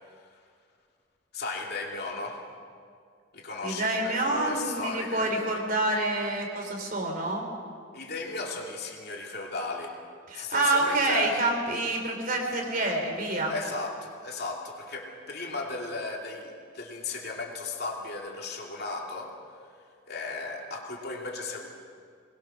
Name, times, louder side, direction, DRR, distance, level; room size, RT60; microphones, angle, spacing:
voice 1, 1.3-2.4 3.3-5.3 7.9-9.9 10.3-11.3 13.5-19.3 20.1-21.7, left 3 dB, 55° left, -1 dB, 2.9 m, -35 dB
voice 2, 3.6-7.4 10.3-13.5, right 2 dB, 45° right, 2 dB, 3.5 m, -27 dB
23.0 x 20.5 x 6.3 m, 2.2 s
head